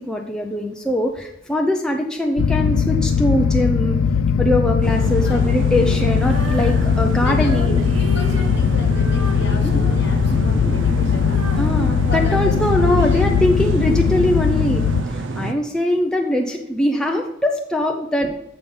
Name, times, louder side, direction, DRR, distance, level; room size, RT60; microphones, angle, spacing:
voice 1, 0.0-4.0 4.4-7.9 9.6-9.9 10.3-10.8 11.6-18.3, left 1 dB, 5° left, 1 dB, 0.5 m, -22 dB
sound 1, 2.4-15.0, left 6 dB, 75° left, 0.3 m, -19 dB
sound 2, 4.8-15.5, right 3 dB, 65° right, 0.6 m, -28 dB
Female singing, 6.1-13.2, equal, 80° right, 1.3 m, -37 dB
voice 2, 7.2-11.4 12.1-13.3, left 2 dB, 55° left, 5 dB, 1.2 m, -33 dB
6.9 x 5.4 x 5.4 m, 0.84 s
head